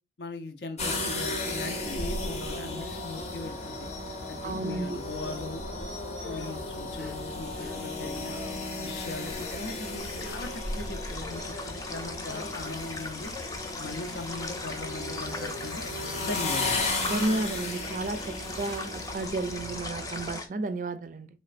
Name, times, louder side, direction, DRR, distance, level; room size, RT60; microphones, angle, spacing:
voice 1, 0.2-3.9 4.3-5.6 6.3-8.4 8.8-13.3 13.8-15.8 16.2-16.9, left 2 dB, 70° left, 0.6 m, -39 dB
sound 1, 0.8-20.4, left 2 dB, 40° left, 0.8 m, -35 dB
sound 2, 2.7-3.3 3.6-3.9 4.6-4.8 5.5-5.7 6.1-8.0 8.3-8.5 9.3-9.7 10.1-10.4 11.0-11.8 12.5-12.7 13.2-13.9 14.5-14.8 15.2-15.6 16.0-16.2 17.2-17.8, left 3 dB, 5° left, 0.8 m, -49 dB
voice 2, 4.4-5.0 17.0-21.3, right 2 dB, 45° right, 0.4 m, -32 dB
sound 3, 7.8-20.5, left 3 dB, 20° left, 0.4 m, -40 dB
4.2 x 3.2 x 2.4 m
head